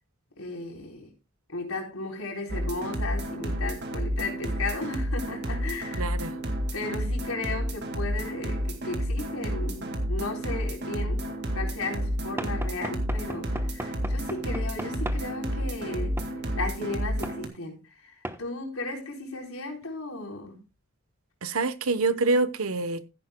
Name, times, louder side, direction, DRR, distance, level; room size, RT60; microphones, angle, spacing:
voice 1, 0.4-1.1 1.5-6.1 6.7-16.2 16.5-20.6, left 2 dB, 85° left, 3.9 m, -35 dB
sound 1, 2.5-17.5, equal, 55° right, 2.0 m, -30 dB
voice 2, 6.0-6.3 21.4-23.1, right 3 dB, 90° right, 0.9 m, -26 dB
Knock / Wood, 12.4-15.3 16.2-16.4 17.2-17.4 18.2-18.4, right 1 dB, 10° right, 0.9 m, -37 dB
15.0 x 10.5 x 2.2 m
head